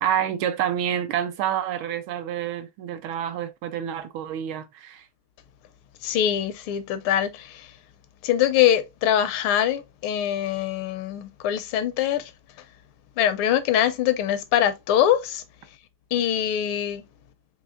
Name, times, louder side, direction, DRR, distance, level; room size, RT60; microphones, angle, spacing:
voice 1, 0.0-5.1, right 9 dB, 80° right, 1.4 m, -28 dB
voice 2, 6.0-7.7 8.2-12.3 13.2-15.4 16.1-17.0, left 10 dB, 80° left, 1.4 m, -23 dB
4.8 x 3.0 x 2.5 m
omnidirectional pair, 2.4 m